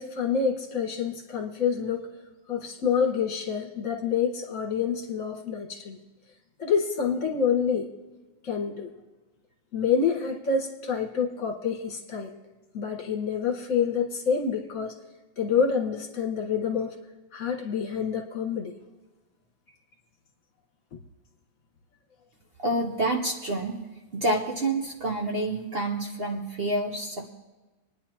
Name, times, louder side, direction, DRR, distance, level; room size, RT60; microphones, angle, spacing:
voice 1, 0.0-2.1 2.5-6.0 6.6-7.9 8.4-8.9 9.7-12.3 12.7-15.0 15.4-16.9 17.3-18.7, left 6 dB, 45° left, 0 dB, 1.9 m, -27 dB
voice 2, 22.6-23.8 24.1-27.3, right 1 dB, 55° right, 1 dB, 0.6 m, -28 dB
25.5 x 10.0 x 2.9 m, 1.2 s
omnidirectional pair, 2.2 m